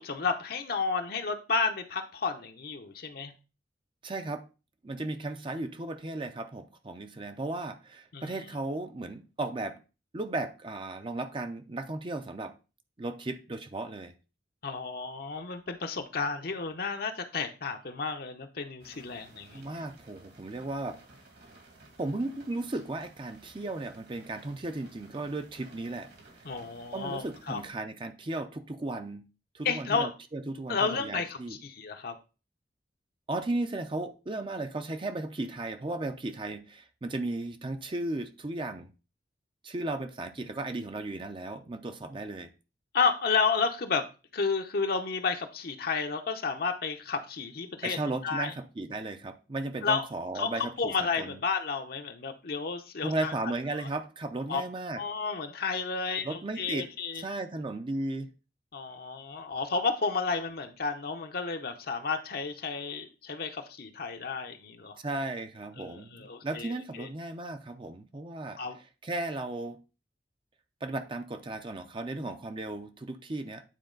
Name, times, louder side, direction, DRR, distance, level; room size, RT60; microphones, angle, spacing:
voice 1, 0.0-3.3 8.1-8.3 14.6-19.6 26.4-27.6 29.6-30.1 30.7-32.1 42.9-44.0 44.3-48.0 48.2-48.5 49.8-50.0 50.3-53.3 54.5-54.6 54.9-57.2 58.7-65.0 65.8-67.1 68.6-68.8, left 4 dB, 60° left, 5 dB, 0.8 m, -31 dB
voice 2, 4.0-4.4 4.8-9.8 10.1-12.5 13.0-14.1 19.5-21.0 22.0-26.1 26.9-29.2 29.5-31.6 33.3-38.9 39.6-42.5 47.8-51.4 53.0-55.0 56.2-56.9 57.1-58.3 65.0-68.6 69.0-69.8 70.8-73.6, right 2 dB, 30° right, 8 dB, 0.6 m, -35 dB
sound 1, 18.8-27.7, right 2 dB, 65° right, 2.3 m, -55 dB
9.3 x 4.1 x 3.9 m, 0.31 s
head